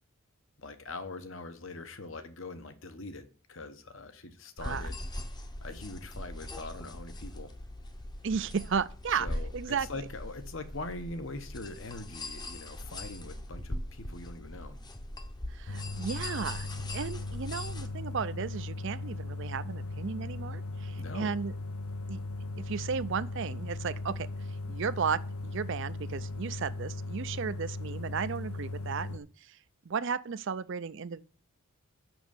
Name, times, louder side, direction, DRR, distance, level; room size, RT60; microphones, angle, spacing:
voice 1, 0.6-5.0 5.6-7.5 9.1-14.8 21.0-21.3, left 2 dB, 60° left, 1.1 m, -42 dB
sound 1, 4.6-17.9, left 1 dB, 20° left, 0.8 m, -41 dB
voice 2, 8.2-9.3 9.5-9.9 15.5-21.5 22.1-22.2 22.6-24.3 24.7-29.6 29.9-31.2, right 6 dB, 55° right, 0.5 m, -34 dB
sound 2, 15.7-29.2, left 2 dB, 85° left, 0.8 m, -38 dB
6.3 x 6.1 x 7.0 m
head